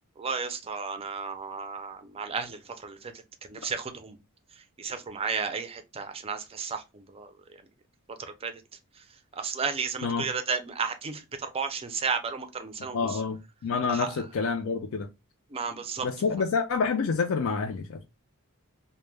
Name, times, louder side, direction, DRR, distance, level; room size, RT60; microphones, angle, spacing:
voice 1, 0.2-4.2 4.5-7.3 8.1-8.6 8.9-13.2 13.9-14.2 15.5-16.1, right 5 dB, 25° right, 0.4 m, -33 dB
voice 2, 12.9-15.1 16.0-18.0, left 5 dB, 65° left, 0.4 m, -28 dB
2.2 x 2.1 x 3.1 m
head